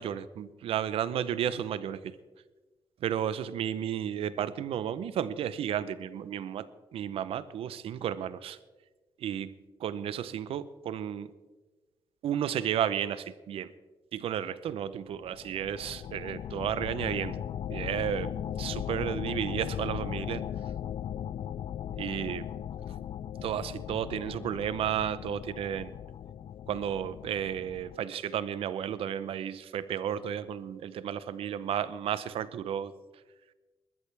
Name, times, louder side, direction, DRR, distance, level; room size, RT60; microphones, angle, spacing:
voice 1, 0.0-2.2 3.0-8.6 9.2-11.3 12.2-13.7 14.1-17.4 17.7-18.3 18.6-20.4 22.0-22.5 23.4-25.9 26.7-32.9, right 9 dB, 90° right, 15 dB, 0.7 m, -33 dB
sound 1, 15.2-28.0, left 10 dB, 65° left, 0.4 m, -38 dB
20.5 x 13.5 x 3.4 m, 1.2 s
cardioid pair, 100°, 10 cm